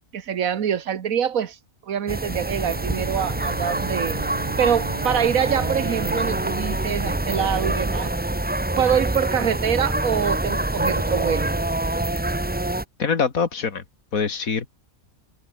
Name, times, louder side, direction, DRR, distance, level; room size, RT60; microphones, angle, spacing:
voice 1, 0.1-1.6 1.9-4.2 4.6-8.1 8.8-11.6, right 8 dB, 75° right, 1.5 m, -25 dB
sound 1, 2.1-12.8, right 1 dB, 10° right, 0.6 m, -26 dB
Bowed string instrument, 2.6-8.2, right 6 dB, 40° right, 1.0 m, -36 dB
voice 2, 13.0-13.8 14.1-14.7, left 5 dB, 75° left, 2.3 m, -24 dB
omnidirectional pair, 1.5 m